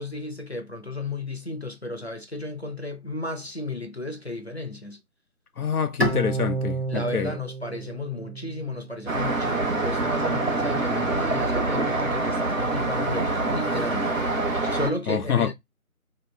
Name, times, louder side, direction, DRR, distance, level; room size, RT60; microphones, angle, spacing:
voice 1, 0.0-5.0 6.9-14.1 14.7-15.5, left 2 dB, 50° left, 0.5 m, -33 dB
voice 2, 5.6-7.3 15.1-15.5, left 7 dB, 85° left, 0.7 m, -26 dB
Bowed string instrument, 6.0-9.2, right 2 dB, 50° right, 0.4 m, -30 dB
Traffic noise roadway noise, 9.1-14.9, right 2 dB, 65° right, 0.9 m, -25 dB
2.9 x 2.8 x 3.3 m
figure-of-eight pair, 180°, 43 cm